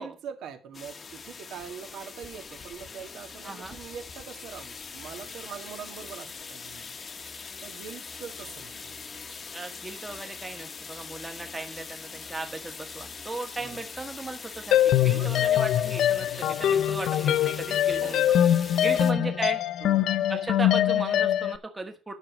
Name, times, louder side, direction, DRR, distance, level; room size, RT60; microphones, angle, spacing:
voice 1, 0.0-7.0 7.6-9.0 13.6-13.8 15.1-15.5 17.9-18.6 18.8-19.4 19.8-20.2, right 7 dB, 70° right, 2.1 m, -43 dB
sound 1, 0.7-19.1, left 5 dB, 30° left, 1.0 m, -42 dB
voice 2, 3.4-3.8 9.5-18.2 18.7-19.6 20.3-22.1, right 2 dB, 15° right, 1.3 m, -36 dB
sound 2, 14.7-21.6, left 11 dB, 65° left, 0.6 m, -23 dB
10.5 x 6.4 x 6.0 m
cardioid pair, 170°, 0 cm